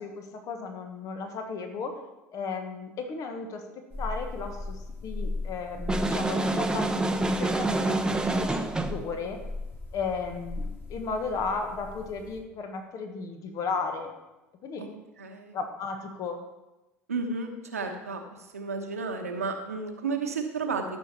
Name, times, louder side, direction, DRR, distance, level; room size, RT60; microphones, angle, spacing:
voice 1, 0.0-1.9 2.3-3.6 4.0-9.4 9.9-14.1 14.6-14.9 15.5-16.4, left 4 dB, 45° left, 5 dB, 1.4 m, -35 dB
sound 1, 3.9-12.4, left 2 dB, 25° left, 2.8 m, -38 dB
sound 2, 5.9-9.0, right 2 dB, 10° right, 0.8 m, -27 dB
voice 2, 15.2-15.6 17.1-18.2 18.5-20.8, right 4 dB, 85° right, 4 dB, 1.1 m, -32 dB
13.5 x 6.3 x 4.3 m, 1.0 s
figure-of-eight pair, 65°, 8 cm